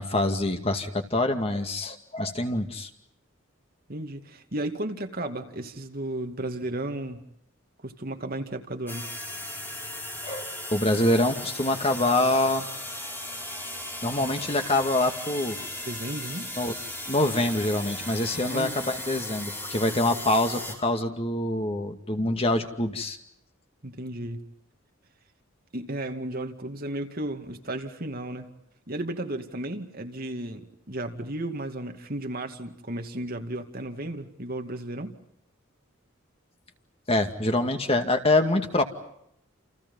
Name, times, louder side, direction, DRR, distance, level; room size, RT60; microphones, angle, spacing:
voice 1, 0.0-2.9 10.2-12.7 14.0-15.6 16.6-16.7 17.1-23.2 37.1-38.8, left 1 dB, 30° left, 6 dB, 2.3 m, -25 dB
voice 2, 3.9-7.2 7.8-9.1 9.4-9.6 15.8-16.5 18.4-18.8 23.8-24.4 25.7-28.5 28.9-35.2, right 1 dB, 45° right, 6 dB, 2.3 m, -34 dB
sound 1, 8.9-20.7, left 1 dB, 10° left, 5.3 m, -37 dB
29.5 x 29.5 x 5.6 m, 0.75 s
head